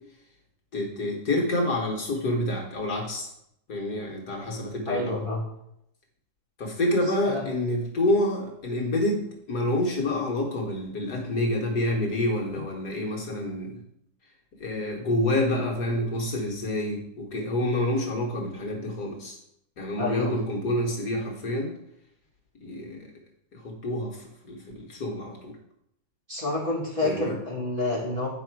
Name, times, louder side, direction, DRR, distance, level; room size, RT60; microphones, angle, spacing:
voice 1, 0.7-3.3 3.7-5.2 6.6-13.8 14.6-19.4 19.8-21.7 22.6-23.1 23.5-25.5 27.0-27.4, left 1 dB, 55° left, 0 dB, 1.7 m, -28 dB
voice 2, 4.9-5.4 7.2-7.4 20.0-20.3 26.3-28.3, left 2 dB, 25° right, -5 dB, 2.2 m, -28 dB
9.0 x 5.4 x 4.6 m, 0.78 s
omnidirectional pair, 2.1 m